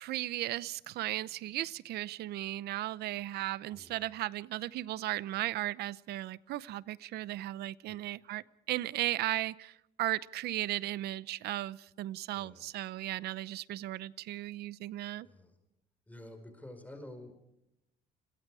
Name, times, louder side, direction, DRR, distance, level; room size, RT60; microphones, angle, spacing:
voice 1, 0.0-15.3, right 15 dB, 75° right, 19 dB, 0.8 m, -36 dB
voice 2, 3.7-4.0 7.9-8.0 12.4-12.7 15.2-15.5 16.1-17.3, left 1 dB, 10° left, 6 dB, 4.8 m, -49 dB
30.0 x 22.5 x 4.9 m, 0.84 s
cardioid pair, 110°, 17 cm